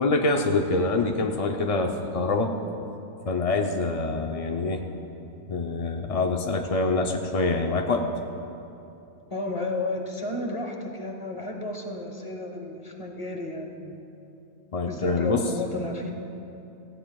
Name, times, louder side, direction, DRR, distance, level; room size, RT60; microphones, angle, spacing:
voice 1, 0.0-2.6 3.3-4.8 5.5-8.1 14.7-15.5, left 3 dB, 60° left, 3 dB, 0.3 m, -25 dB
voice 2, 9.3-14.0 14.9-16.1, left 2 dB, 25° left, 2 dB, 1.1 m, -32 dB
17.5 x 16.0 x 2.3 m, 2.9 s
omnidirectional pair, 1.4 m